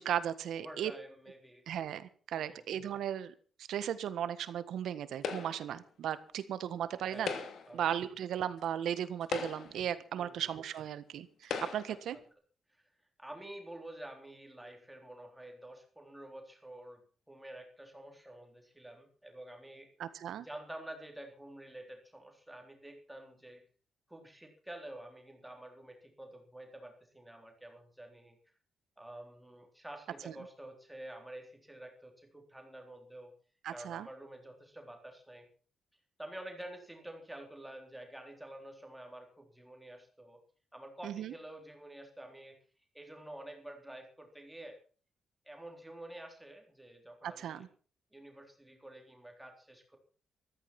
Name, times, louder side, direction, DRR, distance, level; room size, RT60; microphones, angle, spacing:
voice 1, 0.0-0.9 1.7-7.3 7.7-12.2 20.0-20.4 30.2-30.3 33.6-34.1 41.0-41.3 47.2-47.7, right 10 dB, 80° right, 13 dB, 1.5 m, -36 dB
voice 2, 0.5-1.6 2.3-2.6 7.0-7.4 7.7-7.9 10.2-10.5 12.7-12.8 13.2-17.0 17.3-19.9 20.4-23.6 24.1-28.4 29.0-33.3 33.7-35.5 36.2-40.4 40.7-42.6 42.9-44.8 45.5-47.6 48.1-50.0, right 1 dB, 5° right, 3 dB, 3.7 m, -49 dB
sound 1, 5.2-5.8 7.1-7.8 8.6-8.7 9.2-9.9 10.8-10.9 11.4-12.0, left 6 dB, 70° left, 2.6 m, -38 dB
14.5 x 14.0 x 6.0 m, 0.42 s
cardioid pair, 125°, 0 cm